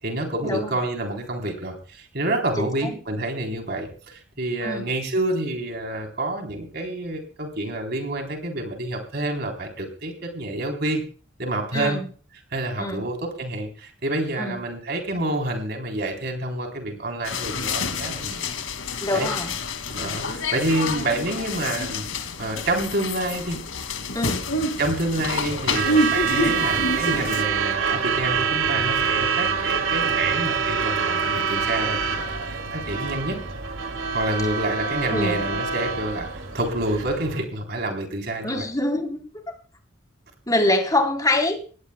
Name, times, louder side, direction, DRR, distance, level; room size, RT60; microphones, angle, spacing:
voice 1, 0.0-11.0 11.4-12.0 12.5-18.5 18.9-19.3 19.9-22.0 22.4-23.6 24.8-33.4 34.1-38.7, right 1 dB, 55° right, 3 dB, 3.5 m, -28 dB
voice 2, 2.6-2.9 4.6-4.9 11.7-12.1 12.8-13.0 14.4-14.6 19.0-19.5 24.1-24.5 35.1-35.4 38.4-39.2 40.5-41.6, left 2 dB, 20° left, 3 dB, 3.4 m, -24 dB
sound 1, 17.2-27.4, left 2 dB, 85° left, 2.1 m, -28 dB
Truck / Alarm, 25.5-37.4, right 6 dB, 75° right, 2.3 m, -26 dB
21.5 x 17.0 x 2.2 m, 0.39 s
head